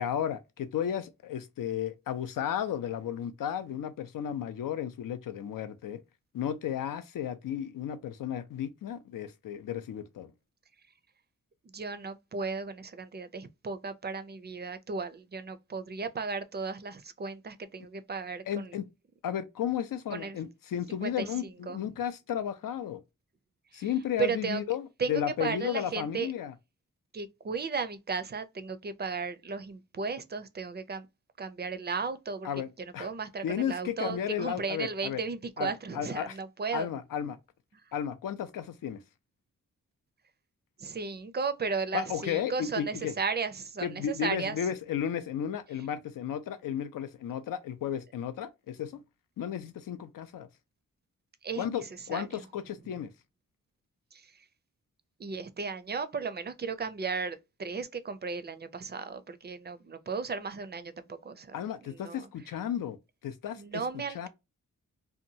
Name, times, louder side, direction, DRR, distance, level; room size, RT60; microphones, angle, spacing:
voice 1, 0.0-6.0 6.3-10.3 18.5-18.9 19.2-23.0 23.7-26.5 32.4-33.1 33.4-35.2 35.6-36.4 36.7-37.4 37.9-39.0 41.9-43.1 43.8-49.0 49.4-50.5 51.6-53.1 61.5-63.0 63.2-63.8 64.1-64.3, left 9 dB, 90° left, 0.5 m, -33 dB
voice 2, 11.7-18.7 20.1-20.4 21.0-21.3 21.7-21.8 23.7-23.8 24.2-24.6 25.0-26.3 27.1-31.1 31.4-32.5 32.8-36.9 40.8-44.6 51.4-52.4 54.1-54.3 55.2-62.3 63.6-64.3, right 5 dB, 35° right, 0.4 m, -35 dB
2.8 x 2.2 x 2.6 m
wide cardioid pair, 90°, 32 cm